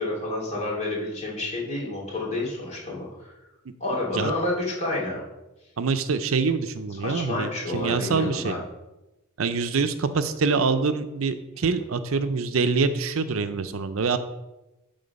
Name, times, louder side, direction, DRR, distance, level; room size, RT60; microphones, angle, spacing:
voice 1, 0.0-3.3 3.8-5.2 7.0-8.6, left 2 dB, 35° left, -4 dB, 2.7 m, -29 dB
voice 2, 5.8-8.6 9.4-14.2, right 4 dB, 75° right, 10 dB, 0.6 m, -25 dB
10.5 x 3.8 x 5.3 m, 0.99 s
head